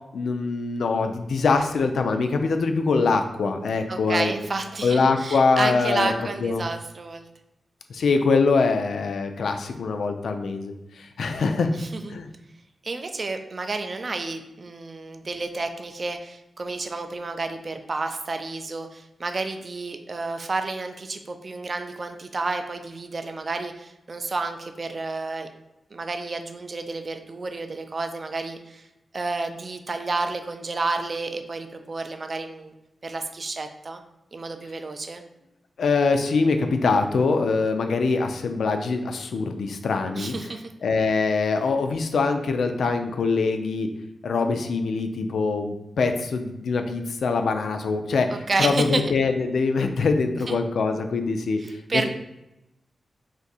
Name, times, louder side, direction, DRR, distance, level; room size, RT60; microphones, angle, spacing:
voice 1, 0.1-4.3 4.8-6.1 6.4-6.6 7.9-11.7 12.1-12.3 35.8-40.3 40.8-43.9 44.2-48.3 48.6-51.6 51.9-52.1, left 4 dB, 80° left, 6 dB, 0.3 m, -23 dB
voice 2, 3.9-7.3 11.7-12.2 12.8-25.5 25.9-28.9 29.1-32.7 33.0-34.0 34.3-35.2 40.1-40.7 48.5-49.0 50.5-50.6 51.6-52.1, right 3 dB, 40° right, 6 dB, 0.3 m, -30 dB
2.6 x 2.5 x 4.0 m, 0.91 s
wide cardioid pair, 120°, 0 cm